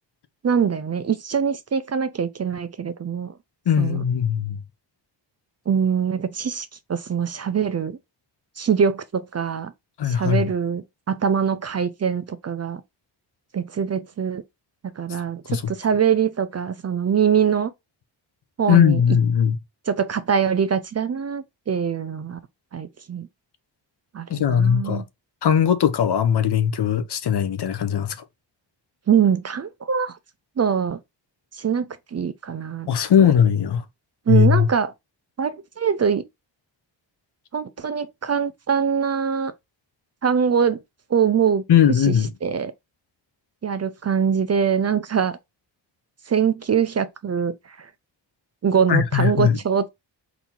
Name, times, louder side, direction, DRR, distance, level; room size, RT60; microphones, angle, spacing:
voice 1, 0.4-3.3 3.8-4.0 5.7-8.0 8.6-9.7 10.1-12.8 13.5-14.4 15.0-17.7 18.6-19.0 19.9-22.4 22.7-23.3 24.1-25.0 29.1-30.2 30.6-31.0 31.5-32.9 33.2-33.3 34.3-34.9 35.4-36.2 37.5-39.5 40.2-40.8 41.1-41.6 42.0-42.2 42.4-42.7 43.6-45.4 46.3-47.9 48.6-49.9, right 7 dB, 35° right, 0.4 m, -23 dB
voice 2, 3.7-4.6 10.0-10.5 15.5-15.6 18.7-19.6 24.3-25.0 25.4-28.2 32.9-33.8 34.3-34.7 41.7-42.3 48.9-49.6, left 8 dB, 60° left, 0.8 m, -19 dB
4.1 x 2.7 x 4.3 m
wide cardioid pair, 100°, 45 cm